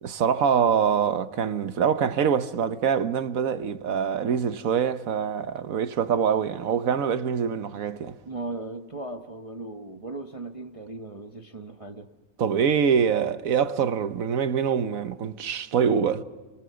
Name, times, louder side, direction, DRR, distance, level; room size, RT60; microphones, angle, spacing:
voice 1, 0.0-8.2 12.4-16.2, right 7 dB, 75° right, 1.4 m, -24 dB
voice 2, 8.2-12.1 15.7-15.8, right 2 dB, 25° right, 1.0 m, -37 dB
29.5 x 20.5 x 6.9 m
omnidirectional pair, 1.5 m